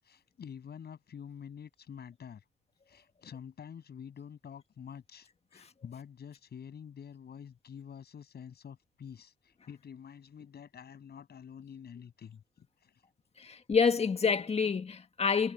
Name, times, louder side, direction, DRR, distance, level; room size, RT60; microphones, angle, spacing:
voice 1, 0.0-2.4 2.9-13.0, left 7 dB, 55° left, 7.8 m, -48 dB
voice 2, 13.4-15.5, left 5 dB, 30° left, 1.6 m, -28 dB
cardioid pair, 90°, 20 cm